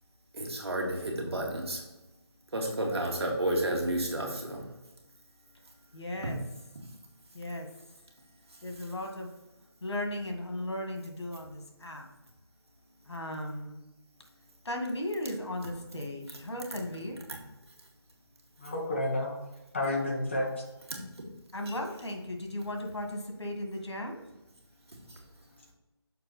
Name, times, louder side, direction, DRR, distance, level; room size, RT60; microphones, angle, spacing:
voice 1, 0.3-1.9 2.5-4.9 5.6-5.8 6.1-6.4 6.7-7.0 7.2-7.4 8.5-8.9 15.6-16.4 16.7-17.9 18.6-18.7 20.9-21.3 21.6-21.8 24.8-25.6, right 1 dB, 70° right, 0 dB, 2.1 m, -34 dB
voice 2, 5.9-6.4 7.3-7.7 8.6-9.3 9.8-12.1 13.0-13.8 14.6-17.2 21.5-24.2, left 1 dB, 90° left, 3 dB, 1.8 m, -36 dB
voice 3, 18.6-19.3 19.7-20.5, left 1 dB, 25° left, -1 dB, 1.1 m, -30 dB
6.8 x 4.7 x 4.1 m, 1.0 s
figure-of-eight pair, 175°, 14 cm